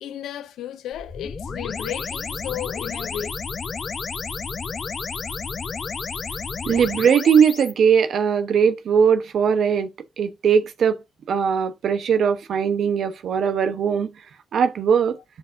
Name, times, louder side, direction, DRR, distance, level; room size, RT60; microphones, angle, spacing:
voice 1, 0.0-3.3, left 11 dB, 90° left, 0.5 m, -33 dB
sound 1, 0.9-7.7, left 5 dB, 50° left, 0.9 m, -31 dB
voice 2, 6.7-9.9 10.2-11.0 11.3-14.1 14.5-15.2, right 7 dB, 75° right, 0.9 m, -19 dB
10.5 x 4.4 x 2.6 m
cardioid pair, 70°, 0 cm